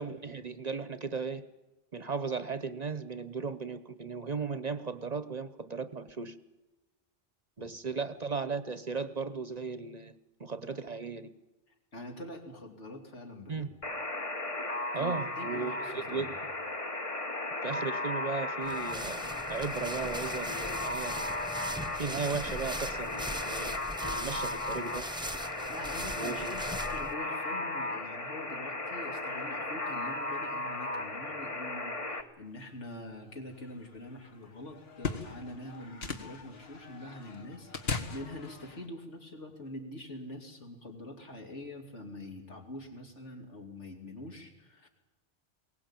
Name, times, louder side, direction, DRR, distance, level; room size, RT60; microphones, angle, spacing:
voice 1, 0.0-1.4 1.9-6.4 7.6-10.1 10.4-11.3 13.5-13.7 14.9-16.3 17.6-21.3 21.9-25.1 26.1-26.6, right 4 dB, 40° right, 14 dB, 0.9 m, -36 dB
voice 2, 7.6-8.1 11.9-13.7 14.9-16.3 25.4-44.9, left 1 dB, 75° left, 2 dB, 3.4 m, -45 dB
Alarm, 13.8-32.2, left 2 dB, 30° left, 1.3 m, -36 dB
sound 1, 18.6-27.1, right 1 dB, 5° right, 0.6 m, -41 dB
sound 2, 32.5-38.9, left 5 dB, 60° left, 1.8 m, -41 dB
22.0 x 18.0 x 9.0 m, 1.1 s
omnidirectional pair, 1.2 m